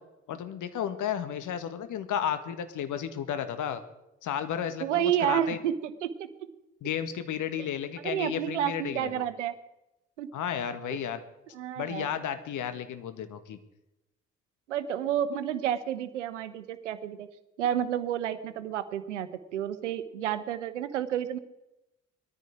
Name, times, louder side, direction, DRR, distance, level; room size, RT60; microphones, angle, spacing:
voice 1, 0.3-3.8 4.2-5.6 6.8-9.2 10.3-11.2 11.8-13.6, left 9 dB, 60° left, 10 dB, 1.7 m, -33 dB
voice 2, 4.8-6.3 8.0-9.6 10.2-10.3 10.9-11.0 11.5-12.1 14.7-17.3 17.6-21.4, right 10 dB, 80° right, 13 dB, 0.9 m, -30 dB
19.5 x 14.0 x 4.8 m, 0.92 s
figure-of-eight pair, 40°, 35 cm